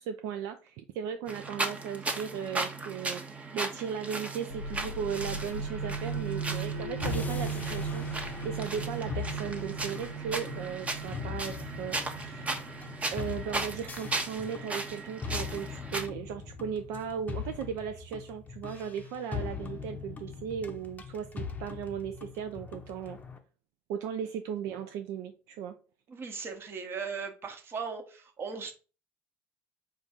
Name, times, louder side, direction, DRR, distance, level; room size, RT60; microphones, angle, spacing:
voice 1, 0.0-3.2 3.5-12.5 13.1-23.2 23.9-25.7, right 8 dB, 60° right, 7 dB, 0.4 m, -37 dB
sound 1, 1.3-16.1, right 2 dB, 20° right, 0.8 m, -37 dB
sound 2, 4.5-15.9, right 4 dB, 90° left, 0.8 m, -38 dB
sound 3, 7.0-23.4, left 6 dB, 25° left, 0.7 m, -41 dB
voice 2, 26.1-28.7, right 5 dB, 35° right, 5 dB, 1.0 m, -38 dB
4.3 x 2.4 x 4.2 m, 0.35 s
figure-of-eight pair, 60°, 7 cm